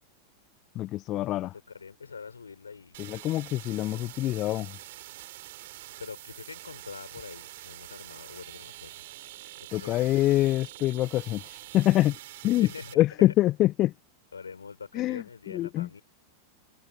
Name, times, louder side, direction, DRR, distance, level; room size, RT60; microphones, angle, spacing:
voice 1, 0.7-1.5 3.0-4.8 9.7-12.2 12.4-12.7 13.0-13.9 14.9-15.2 15.5-15.9, left 15 dB, 35° left, 1.1 m, -25 dB
voice 2, 1.5-3.0 6.0-9.0 9.6-10.3 12.5-13.3 14.3-16.0, left 5 dB, 75° left, 6.5 m, -44 dB
sound 1, 2.9-12.9, right 17 dB, 55° right, 3.7 m, -46 dB
figure-of-eight pair, 90°, 0 cm